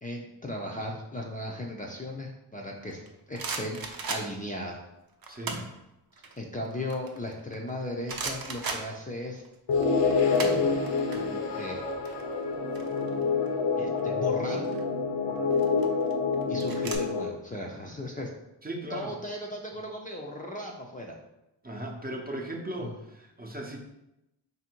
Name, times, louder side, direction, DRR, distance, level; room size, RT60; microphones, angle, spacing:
voice 1, 0.0-3.0 3.3-3.8 4.1-4.8 6.4-9.4 11.1-11.8 13.8-14.7 16.5-18.3 18.9-21.2 22.8-22.9, left 1 dB, 20° left, -1 dB, 0.5 m, -36 dB
sound 1, 2.9-4.6 5.2-5.8 6.2-7.7 8.1-9.5 9.7-11.2 11.4-11.6 11.9-13.5 14.4-14.8 15.5-17.0, right 4 dB, 55° right, 0.7 m, -36 dB
voice 2, 5.3-5.6 18.6-19.1 21.6-23.8, right 1 dB, 20° right, 0 dB, 0.7 m, -37 dB
sound 2, 9.7-17.2, left 4 dB, 70° left, 0.7 m, -27 dB
3.4 x 2.6 x 4.4 m, 0.90 s
cardioid pair, 60°, 44 cm